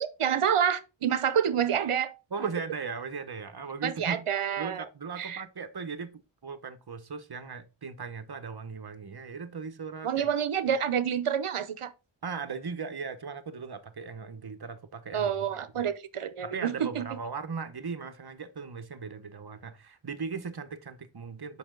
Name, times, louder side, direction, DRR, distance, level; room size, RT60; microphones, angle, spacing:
voice 1, 0.0-2.1 3.8-4.8 5.2-5.4 10.0-11.9 15.1-17.1, right 8 dB, 90° right, 0.8 m, -28 dB
voice 2, 2.3-4.2 4.6-10.3 10.7-10.8 12.2-15.9 16.4-21.6, right 5 dB, 50° right, 1.0 m, -38 dB
6.9 x 5.6 x 3.9 m
wide cardioid pair, 65°, 49 cm